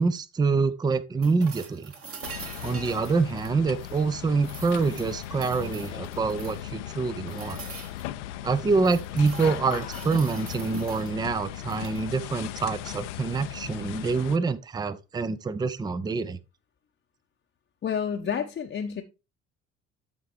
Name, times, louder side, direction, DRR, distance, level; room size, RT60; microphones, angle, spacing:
voice 1, 0.0-1.9 2.6-7.6 8.4-16.4, right 4 dB, 10° right, 0.5 m, -26 dB
sound 1, 1.2-4.1 4.4-6.7 7.3-8.1 8.5-11.1 11.6-12.1 14.1-14.2, right 5 dB, 35° right, 1.7 m, -44 dB
sound 2, 2.2-14.4, left 13 dB, 70° left, 0.6 m, -38 dB
voice 2, 17.8-19.0, left 7 dB, 30° left, 0.8 m, -29 dB
12.5 x 4.5 x 3.2 m
figure-of-eight pair, 55°, 38 cm